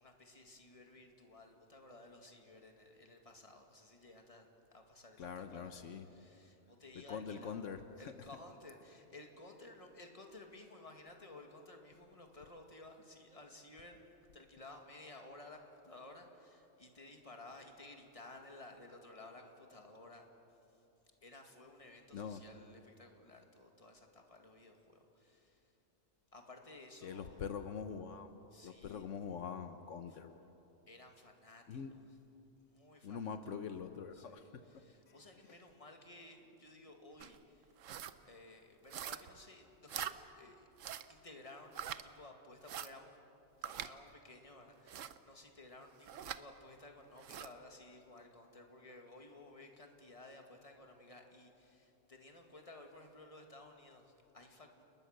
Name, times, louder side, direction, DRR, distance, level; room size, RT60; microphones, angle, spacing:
voice 1, 0.0-7.7 8.0-14.1 14.3-20.3 20.7-20.8 21.2-25.7 26.3-27.4 28.5-29.1 30.1-30.2 30.9-32.2 32.7-33.5 34.1-37.7 38.2-40.7 41.1-43.2 43.6-54.8, left 2 dB, 25° left, 3 dB, 2.2 m, -56 dB
voice 2, 5.2-6.1 7.0-7.8 22.1-22.4 27.0-30.4 31.7-31.9 33.0-34.6 35.1-35.2, left 6 dB, 75° left, 8 dB, 1.2 m, -44 dB
sound 1, 37.2-37.4 37.8-38.2 38.9-39.4 39.9-40.2 40.8-41.1 41.7-42.0 42.6-42.9 43.6-43.9 44.9-45.2 46.1-46.4 47.2-47.5, right 10 dB, 80° right, 1.1 m, -43 dB
29.5 x 20.0 x 6.6 m, 3.0 s
omnidirectional pair, 1.3 m